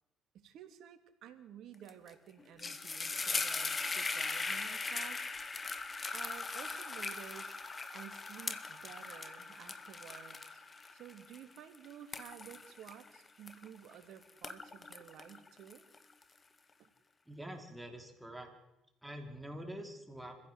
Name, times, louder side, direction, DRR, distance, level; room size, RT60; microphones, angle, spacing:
voice 1, 0.3-5.2 6.1-7.6 7.9-10.6 10.9-15.8 16.8-16.9, right 9 dB, 70° right, 8 dB, 2.8 m, -52 dB
sound 1, 1.9-2.1 2.4-13.9 14.3-16.2, left 4 dB, 30° left, 2.0 m, -40 dB
voice 2, 17.3-18.5 19.0-20.5, equal, 5° right, 4 dB, 5.1 m, -46 dB
25.5 x 16.0 x 8.2 m, 0.96 s
supercardioid pair, 70°, 0 cm